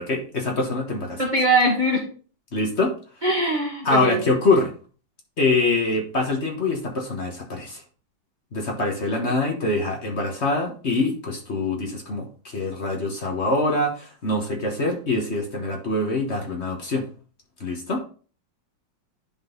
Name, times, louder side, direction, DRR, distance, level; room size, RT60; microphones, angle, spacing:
voice 1, 0.0-1.2 2.5-2.9 3.8-4.7 5.4-7.8 8.5-17.1 17.6-18.0, left 2 dB, 40° left, 1 dB, 1.5 m, -24 dB
voice 2, 1.2-2.1 3.2-4.2, right 1 dB, 25° right, -2 dB, 1.5 m, -21 dB
11.0 x 3.9 x 3.9 m, 0.40 s
omnidirectional pair, 2.0 m